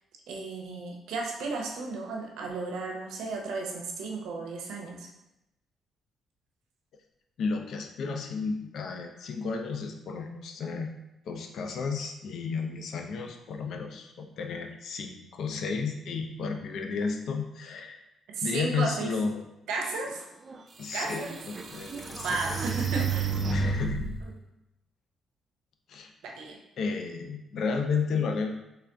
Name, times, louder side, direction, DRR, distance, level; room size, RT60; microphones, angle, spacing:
voice 1, 0.3-5.1 18.3-19.1 19.7-20.2 20.9-21.4 22.2-23.4 26.2-26.6, right 3 dB, 85° right, 1 dB, 0.6 m, -34 dB
voice 2, 7.4-11.0 11.2-18.0 18.4-19.4 20.8-22.6 23.0-23.1 23.5-24.1 25.9-26.1 26.8-28.5, left 5 dB, 70° left, 4 dB, 0.4 m, -32 dB
sound 1, 20.5-20.6 21.1-24.2, right 4 dB, 35° right, 0.3 m, -31 dB
3.3 x 2.5 x 3.4 m, 0.90 s
cardioid pair, 90°, 0 cm